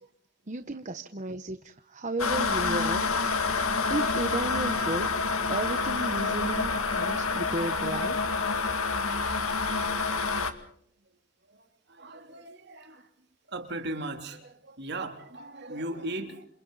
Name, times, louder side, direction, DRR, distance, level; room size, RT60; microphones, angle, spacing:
voice 1, 0.5-3.2 3.9-5.1 5.5-8.2, right 2 dB, 35° right, 1.0 m, -33 dB
sound 1, 2.2-10.5, left 4 dB, 85° left, 2.3 m, -28 dB
voice 2, 7.7-8.0 8.7-8.9 11.5-13.1 13.5-16.5, right 2 dB, 50° right, 3.3 m, -38 dB
29.0 x 28.5 x 4.1 m
head